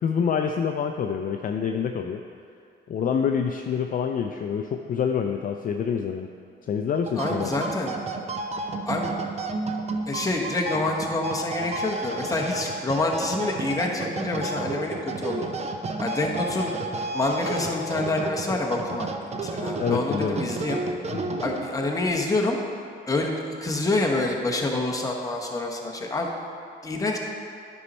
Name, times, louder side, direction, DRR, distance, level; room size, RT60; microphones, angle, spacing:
voice 1, 0.0-2.2 2.9-6.3 6.6-7.5 19.8-20.4 21.1-21.3, left 7 dB, 45° left, 4 dB, 0.4 m, -26 dB
sound 1, 6.9-21.9, right 3 dB, 35° right, 0.6 m, -32 dB
voice 2, 7.1-8.0 8.9-9.1 10.1-15.5 16.0-16.7 17.1-19.1 19.4-20.8 21.4-22.6 23.1-23.3 23.6-26.3 26.8-27.2, left 2 dB, 15° left, -1 dB, 1.2 m, -27 dB
9.8 x 5.4 x 4.3 m, 2.4 s
cardioid pair, 90°, 20 cm